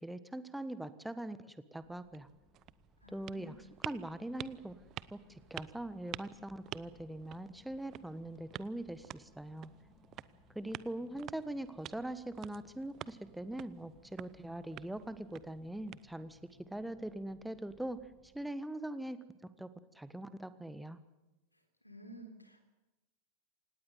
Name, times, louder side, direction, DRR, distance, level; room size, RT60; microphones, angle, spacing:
voice 1, 0.0-2.3 3.1-3.5 3.8-4.7 5.1-9.7 10.5-18.1 18.3-19.2 19.6-19.7 19.9-21.0, right 1 dB, 5° right, 13 dB, 1.3 m, -42 dB
sound 1, 1.8-18.5, left 2 dB, 10° left, 3.8 m, -66 dB
sound 2, 2.1-16.5, right 13 dB, 35° right, 0.7 m, -50 dB
voice 2, 3.0-3.7 21.5-22.7, right 1 dB, 85° left, 6 dB, 3.6 m, -53 dB
26.0 x 19.0 x 7.9 m, 1.0 s
figure-of-eight pair, 90°, 0 cm